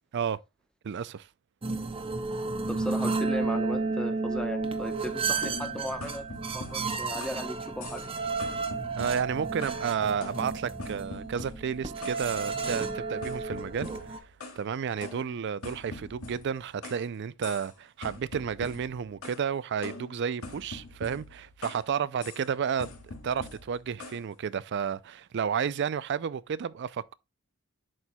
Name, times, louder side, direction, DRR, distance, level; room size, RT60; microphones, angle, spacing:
voice 1, 0.8-1.3 9.0-14.2 14.6-22.9 23.2-27.1, right 7 dB, 50° right, 0.4 m, -31 dB
sound 1, 1.6-14.2, right 4 dB, 25° right, 0.7 m, -32 dB
voice 2, 2.7-6.2 6.5-8.1, equal, 5° left, 0.9 m, -36 dB
sound 2, 5.4-7.5 7.8-8.1 8.4-9.9 10.2-12.2 12.6-12.8 13.2-14.6 15.0-17.1 17.4-17.7 18.0-19.4 19.8-21.9 22.2-22.5 22.8-24.2, left 3 dB, 80° left, 2.0 m, -44 dB
11.0 x 4.5 x 2.2 m
head